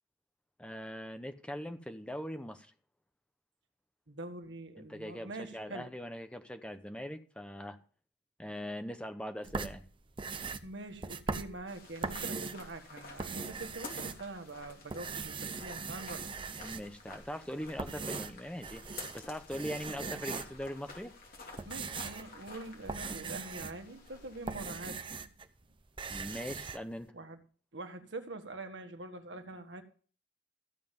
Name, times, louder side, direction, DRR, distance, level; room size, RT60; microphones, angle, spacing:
voice 1, 0.6-2.7 4.8-7.8 8.4-9.9 16.6-21.1 26.1-27.1, equal, 5° left, 0.9 m, -41 dB
voice 2, 4.1-5.9 10.6-16.3 21.6-25.0 27.1-27.4 27.7-29.8, right 2 dB, 80° right, 1.6 m, -44 dB
sound 1, 9.4-12.7 13.0-14.5 14.9-17.0 17.6-19.2 19.5-20.7 21.3-25.5 25.7-26.8, right 4 dB, 25° right, 0.7 m, -40 dB
sound 2, 11.7-24.6, left 3 dB, 50° left, 3.0 m, -51 dB
14.5 x 7.6 x 5.3 m
head